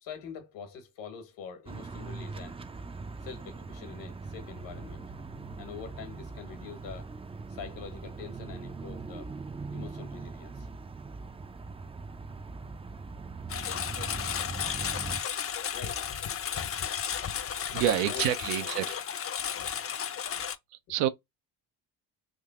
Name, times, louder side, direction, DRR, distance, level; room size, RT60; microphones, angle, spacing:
voice 1, 0.0-2.6 3.2-5.0 5.6-7.1 7.5-9.3 9.7-10.7 15.7-16.1 17.7-19.0 19.5-19.8, left 6 dB, 75° left, 1.5 m, -44 dB
sound 1, 1.7-15.2, right 4 dB, 15° right, 0.4 m, -41 dB
Engine, 13.5-20.6, left 8 dB, 30° left, 0.6 m, -33 dB
voice 2, 17.7-18.9 20.9-21.1, right 13 dB, 80° right, 0.7 m, -27 dB
3.7 x 2.7 x 2.4 m
supercardioid pair, 70°, 44 cm